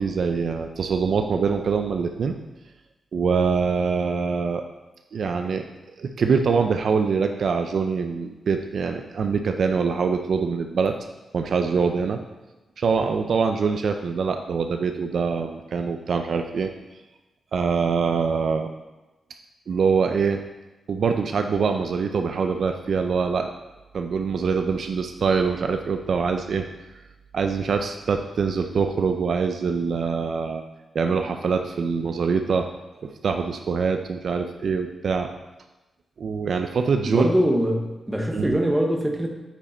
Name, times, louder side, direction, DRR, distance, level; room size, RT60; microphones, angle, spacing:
voice 1, 0.0-2.4 3.1-4.6 5.1-5.6 6.0-11.0 11.3-12.2 12.8-16.7 17.5-18.7 19.7-20.4 20.9-23.5 23.9-26.6 27.3-30.6 30.9-32.7 33.0-35.3 36.2-37.3 38.3-38.6, right 5 dB, 55° right, 6 dB, 0.4 m, -24 dB
voice 2, 37.0-39.3, equal, 10° right, 2 dB, 0.8 m, -23 dB
8.7 x 5.1 x 4.3 m, 1.1 s
wide cardioid pair, 180°, 0 cm